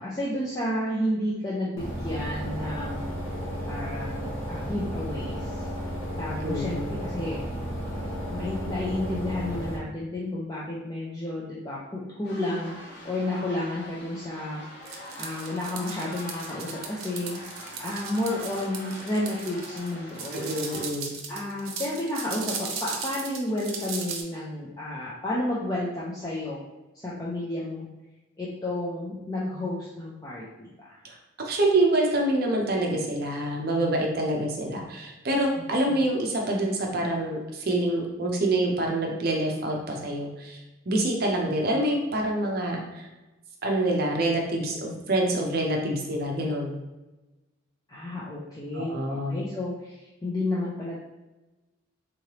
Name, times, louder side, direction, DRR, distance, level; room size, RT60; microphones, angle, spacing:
voice 1, 0.0-3.1 3.7-5.7 6.2-7.4 8.3-14.6 15.2-20.6 21.3-26.6 27.0-27.9 28.4-31.0 35.9-36.0 47.9-51.0, left 1 dB, 20° left, -7 dB, 0.5 m, -31 dB
sound 1, 1.8-9.8, equal, 70° left, 1.1 m, -33 dB
voice 2, 6.4-7.0 20.3-21.2 31.0-43.1 43.6-46.8 48.7-49.4, right 1 dB, 45° right, 0 dB, 0.6 m, -26 dB
sound 2, 12.2-20.9, equal, 50° left, 0.7 m, -43 dB
sound 3, 14.9-24.2, right 5 dB, 85° right, 0.6 m, -37 dB
3.7 x 3.2 x 2.9 m, 1.1 s
head